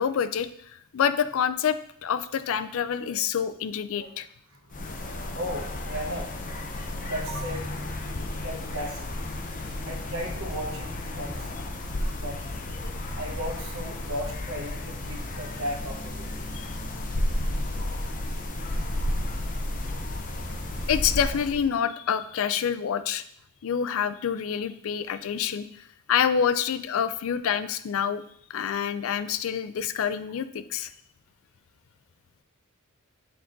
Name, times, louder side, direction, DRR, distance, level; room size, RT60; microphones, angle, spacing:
voice 1, 0.0-4.3 16.5-16.7 20.9-23.2 23.6-28.2 28.5-30.9, left 8 dB, 65° left, 12 dB, 0.4 m, -27 dB
voice 2, 4.5-4.8 5.3-6.3 7.0-7.7 8.4-9.1 9.6-11.5 12.2-12.4 13.2-16.3, equal, 80° right, 0 dB, 1.3 m, -35 dB
sound 1, 4.7-21.7, left 1 dB, 40° left, 0.7 m, -32 dB
6.9 x 3.7 x 3.8 m, 0.68 s
head